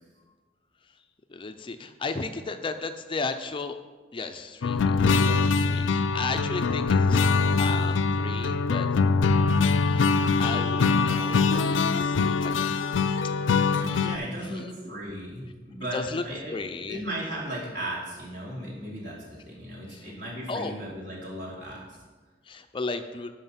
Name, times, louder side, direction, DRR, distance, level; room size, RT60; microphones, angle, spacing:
voice 1, 1.3-3.8 4.1-7.3 7.6-9.0 9.9-10.1 10.4-12.8 14.4-14.7 15.9-16.2 16.5-17.0 19.9-20.1 20.5-20.7 22.4-23.3, left 3 dB, 25° left, 8 dB, 0.4 m, -35 dB
sound 1, 4.6-14.2, left 4 dB, 90° left, 0.4 m, -23 dB
voice 2, 14.0-16.6 16.9-22.0, right 1 dB, 65° right, -4 dB, 3.0 m, -36 dB
11.0 x 5.1 x 5.6 m, 1.3 s
head